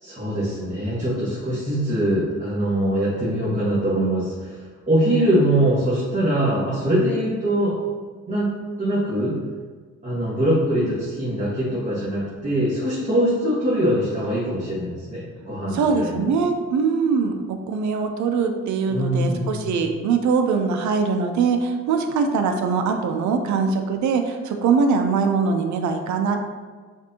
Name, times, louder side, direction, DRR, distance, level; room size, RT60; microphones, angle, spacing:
voice 1, 0.0-7.7 8.3-8.5 8.8-9.3 10.0-16.2 18.9-19.8, right 1 dB, 25° right, -10 dB, 1.4 m, -23 dB
voice 2, 15.7-17.4 17.7-26.4, right 5 dB, 70° right, 5 dB, 0.6 m, -22 dB
5.9 x 2.6 x 2.8 m, 1.5 s
cardioid pair, 90°, 30 cm